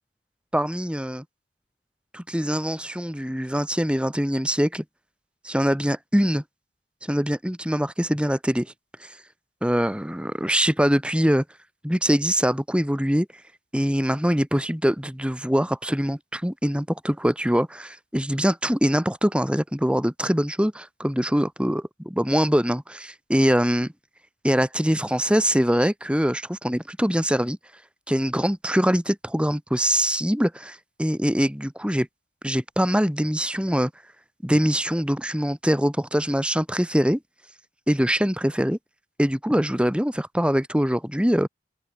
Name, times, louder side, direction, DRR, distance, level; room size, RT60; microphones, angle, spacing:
voice 1, 0.5-1.2 2.1-4.8 5.4-6.4 7.0-8.7 9.0-9.1 9.6-11.4 11.8-13.3 13.7-23.9 24.4-27.6 28.1-32.1 32.4-33.9 34.4-37.2 37.9-38.8 39.2-41.5, equal, 5° right, 3.1 m, -23 dB
open air
head